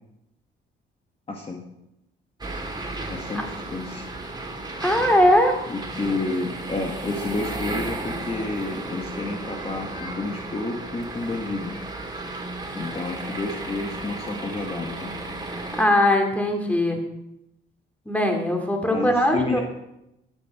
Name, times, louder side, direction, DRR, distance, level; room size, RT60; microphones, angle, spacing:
voice 1, 1.3-1.6 3.1-4.0 5.7-11.7 12.7-15.2 18.9-19.6, left 3 dB, 30° left, 1 dB, 1.6 m, -30 dB
sound 1, 2.4-15.9, right 2 dB, 20° right, 2.3 m, -34 dB
voice 2, 4.8-5.6 15.8-17.0 18.1-19.6, left 1 dB, 5° left, 3 dB, 2.5 m, -20 dB
12.0 x 8.9 x 4.9 m, 0.86 s
cardioid pair, 90°, 20 cm